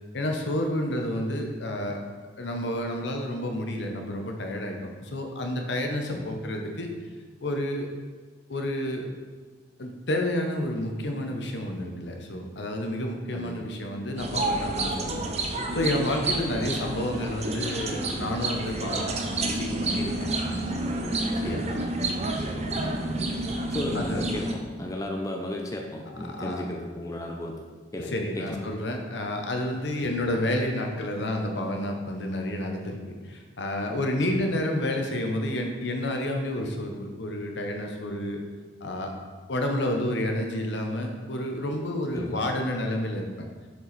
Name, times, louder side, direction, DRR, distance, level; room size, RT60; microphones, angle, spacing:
voice 1, 0.1-2.0 2.4-6.9 7.4-7.9 8.5-9.1 9.8-15.2 15.7-20.3 20.9-21.7 23.9-24.3 26.1-26.7 28.0-38.4 38.8-39.1 39.5-43.5, left 1 dB, 65° left, 3 dB, 0.9 m, -30 dB
voice 2, 13.3-13.7 16.6-16.7 21.3-21.7 23.7-24.5 24.8-27.5 27.9-28.6 30.0-30.1 34.3-34.5 42.1-42.4, left 1 dB, 20° left, 1 dB, 0.5 m, -34 dB
sound 1, 14.2-24.5, right 2 dB, 35° right, 0.6 m, -29 dB
6.9 x 4.7 x 4.1 m, 1.4 s
head